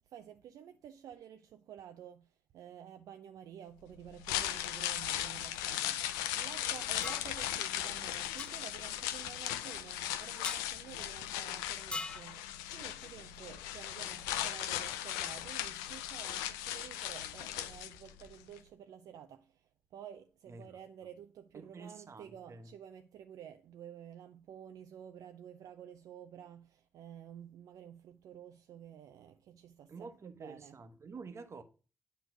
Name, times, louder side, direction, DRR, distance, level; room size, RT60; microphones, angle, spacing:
voice 1, 0.1-2.3 2.5-30.1 30.4-30.8, right 9 dB, 70° right, 0.5 m, -51 dB
sound 1, 4.0-18.3 18.6-18.7, left 12 dB, 85° left, 0.4 m, -38 dB
sound 2, 7.0-7.3 8.4-8.5 10.4-10.7 11.9-12.3, left 2 dB, 15° left, 0.3 m, -40 dB
voice 2, 20.5-20.8 21.5-22.7 29.9-31.6, right 4 dB, 50° right, 1.1 m, -49 dB
9.1 x 3.3 x 6.0 m
hypercardioid pair, 40°, 6 cm